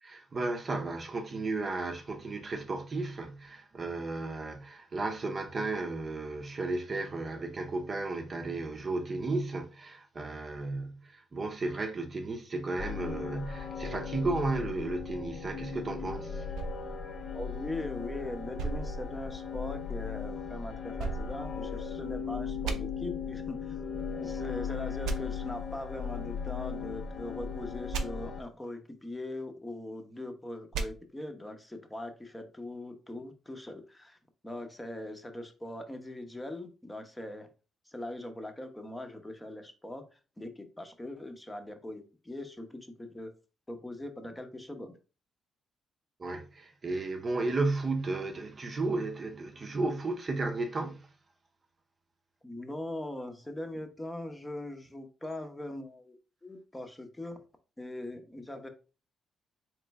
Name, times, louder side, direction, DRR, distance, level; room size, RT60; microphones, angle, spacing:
voice 1, 0.0-16.5 46.2-51.1, right 3 dB, 35° right, 0.7 m, -34 dB
sound 1, 12.8-28.4, left 6 dB, 50° left, 0.8 m, -37 dB
sound 2, 16.5-18.0 18.6-19.8 21.0-22.1 22.6-22.8 25.0-25.2 27.9-28.0 30.7-30.9, right 5 dB, 85° right, 0.5 m, -37 dB
voice 2, 17.3-23.8 24.1-34.2 34.4-37.5 37.9-43.3 43.7-45.0 52.4-56.1 56.4-57.4 57.8-58.7, left 1 dB, 15° left, 0.8 m, -41 dB
3.7 x 3.1 x 3.4 m
cardioid pair, 90°, 0 cm